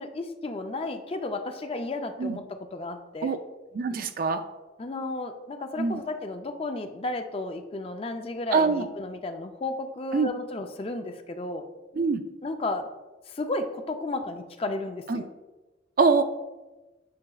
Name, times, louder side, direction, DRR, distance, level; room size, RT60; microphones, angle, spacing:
voice 1, 0.0-3.4 4.8-11.6 12.4-12.9 13.3-15.3, left 2 dB, 30° left, 7 dB, 0.4 m, -33 dB
voice 2, 3.7-4.4 5.8-6.0 8.5-8.9 10.1-10.3 11.9-12.2 15.1-15.2 16.0-16.2, right 4 dB, 50° right, 9 dB, 0.4 m, -24 dB
8.5 x 5.8 x 2.3 m, 1.1 s
head